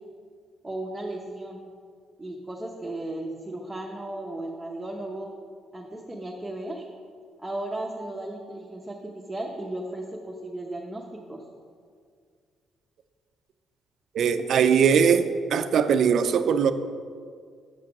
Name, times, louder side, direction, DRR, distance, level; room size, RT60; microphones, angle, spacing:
voice 1, 0.6-1.6 2.2-5.3 5.7-6.9 7.4-11.4, right 1 dB, 10° right, -2 dB, 1.0 m, -35 dB
voice 2, 14.1-16.7, right 7 dB, 65° right, 10 dB, 0.5 m, -21 dB
7.6 x 5.9 x 5.9 m, 2.1 s
cardioid pair, 90°, 0 cm